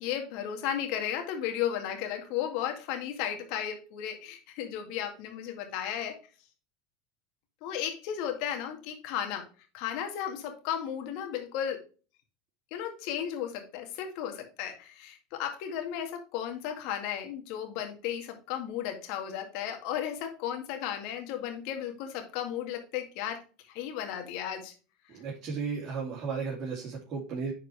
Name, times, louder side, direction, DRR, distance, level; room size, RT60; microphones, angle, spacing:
voice 1, 0.0-6.2 7.6-9.4 9.7-11.8 12.7-23.4 23.7-24.7, left 9 dB, 60° left, 4 dB, 2.1 m, -34 dB
voice 2, 25.1-27.5, right 5 dB, 40° right, -4 dB, 2.9 m, -34 dB
10.0 x 4.7 x 3.5 m, 0.35 s
hypercardioid pair, 85°, 0 cm